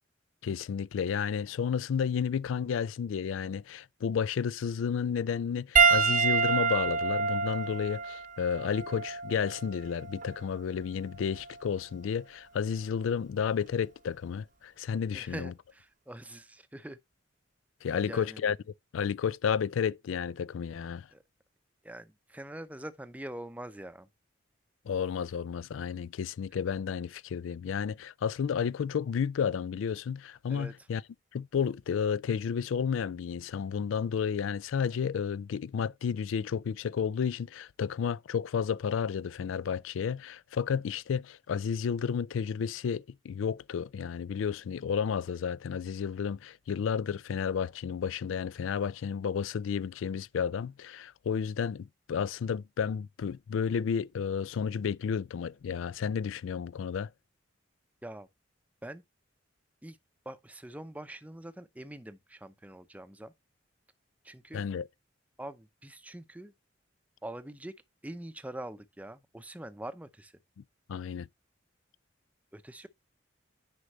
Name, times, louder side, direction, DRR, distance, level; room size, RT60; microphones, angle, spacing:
voice 1, 0.4-15.5 17.8-18.6 18.9-21.1 24.9-31.0 31.3-57.1 64.5-64.9 70.9-71.3, left 7 dB, 80° left, 0.3 m, -32 dB
Piano, 5.8-10.4 11.4-11.5 13.5-13.6, right 5 dB, 40° right, 0.7 m, -27 dB
voice 2, 15.1-17.0 17.9-18.4 21.1-21.2 21.8-24.1 30.5-30.7 58.0-58.3 58.8-59.0 59.8-60.0 60.3-63.3 64.2-64.6 65.4-66.5 67.2-67.7 68.0-70.3 72.5-72.9, right 1 dB, 10° right, 0.6 m, -44 dB
9.8 x 5.2 x 3.1 m
head